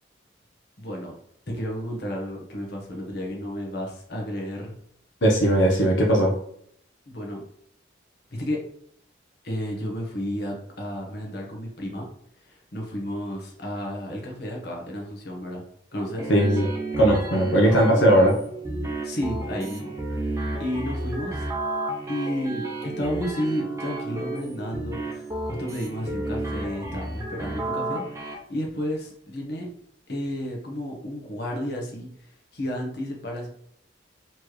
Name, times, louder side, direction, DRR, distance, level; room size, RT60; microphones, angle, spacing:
voice 1, 0.8-1.1 1.5-4.7 7.1-7.4 8.3-8.6 9.4-12.1 12.4-15.6 15.9-16.3 19.0-21.5 22.1-29.7 30.1-33.5, equal, 60° left, 0 dB, 1.1 m, -32 dB
voice 2, 5.2-6.3 16.3-16.7 17.0-18.3, right 1 dB, 90° left, -1 dB, 0.8 m, -18 dB
sound 1, 16.2-28.3, right 2 dB, 15° right, 0.7 m, -31 dB
4.3 x 3.1 x 3.1 m, 0.68 s
head